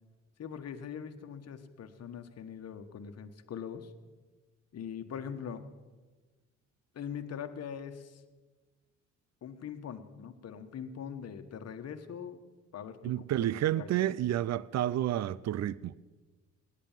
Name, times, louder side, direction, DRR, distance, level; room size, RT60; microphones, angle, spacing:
voice 1, 0.4-3.9 4.7-5.6 6.9-8.2 9.4-12.4 12.7-13.1 13.8-14.1, left 7 dB, 55° left, 1.4 m, -42 dB
voice 2, 13.0-15.9, right 12 dB, 60° right, 0.6 m, -30 dB
18.0 x 9.8 x 7.4 m
cardioid pair, 90°, 30 cm